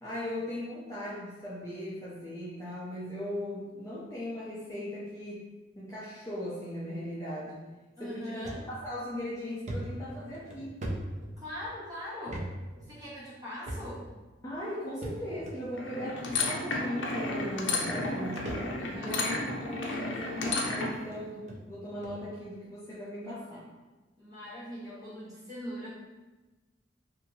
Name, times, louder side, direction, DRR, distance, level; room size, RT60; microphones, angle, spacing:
voice 1, 0.0-5.5 5.8-7.6 8.0-10.8 14.4-18.5 18.9-19.3 19.6-23.7, left 1 dB, 15° left, -8 dB, 0.4 m, -38 dB
voice 2, 8.0-8.7 11.4-12.5 12.9-14.1 18.8-19.2 24.2-25.9, equal, 20° right, -10 dB, 1.2 m, -41 dB
sound 1, 8.4-8.6 9.1-9.2 9.7-11.7 12.2-12.5 12.8-12.9 13.6-14.1 15.0-15.5 16.4-16.5 17.5-17.6 17.8-19.0 19.5-19.7 20.5-20.6 21.1-21.2 21.5-21.6 22.0-22.2, right 1 dB, 40° right, 0.4 m, -39 dB
sound 2, 15.7-21.0, left 3 dB, 75° left, 0.5 m, -32 dB
2.8 x 2.5 x 2.6 m, 1.2 s
head